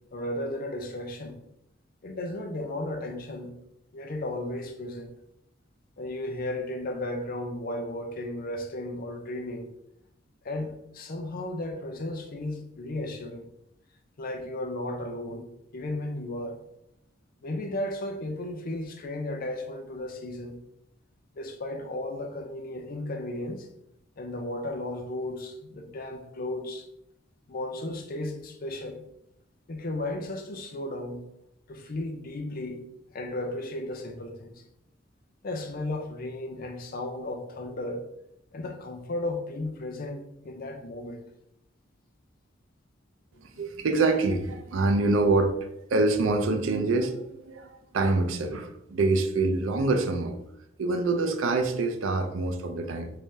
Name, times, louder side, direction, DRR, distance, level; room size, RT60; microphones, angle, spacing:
voice 1, 0.1-1.4 2.0-3.5 3.9-5.1 6.0-9.7 10.4-13.5 14.2-15.5 15.7-16.6 17.4-20.6 21.3-23.7 24.2-26.9 27.5-29.0 29.7-31.2 31.7-32.8 33.1-34.6 35.4-38.1 38.5-41.2 43.5-43.6, left 1 dB, 50° left, 4 dB, 0.5 m, -34 dB
voice 2, 43.4-50.4 50.8-53.1, right 3 dB, 85° right, 7 dB, 0.5 m, -26 dB
3.3 x 3.3 x 2.7 m, 0.81 s
head